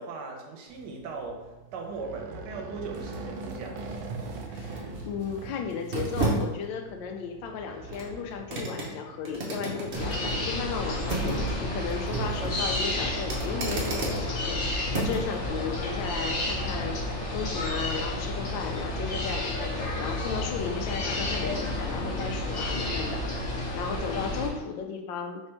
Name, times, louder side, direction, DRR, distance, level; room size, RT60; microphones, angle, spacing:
voice 1, 0.0-3.8, right 4 dB, 70° right, 2 dB, 1.3 m, -38 dB
sound 1, 0.7-15.4 15.8-15.9, right 3 dB, 50° right, 0.8 m, -35 dB
sound 2, 0.7-0.8 1.9-5.7 6.5-6.6 7.3-8.7 9.7-15.8, right 2 dB, 85° right, 1.4 m, -41 dB
voice 2, 4.5-14.6 14.9-25.4, left 6 dB, 80° left, 4 dB, 1.3 m, -35 dB
sound 3, 9.9-24.5, left 1 dB, 45° left, 1.2 m, -31 dB
3.4 x 3.3 x 4.4 m, 1.1 s
omnidirectional pair, 2.1 m